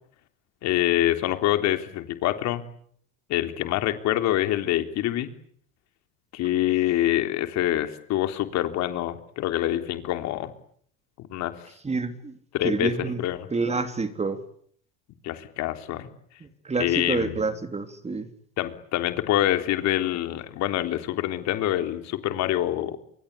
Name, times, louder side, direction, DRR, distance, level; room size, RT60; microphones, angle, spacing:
voice 1, 0.6-2.6 3.3-5.3 6.3-10.5 11.2-11.5 12.5-12.9 13.2-13.5 15.2-16.1 16.8-17.4 18.6-23.0, left 13 dB, 60° left, 8 dB, 3.5 m, -25 dB
voice 2, 11.8-12.3 12.6-13.2 13.5-14.4 16.6-18.3, right 4 dB, 20° right, 10 dB, 3.3 m, -28 dB
29.0 x 23.5 x 8.4 m, 0.64 s
supercardioid pair, 95°, 30 cm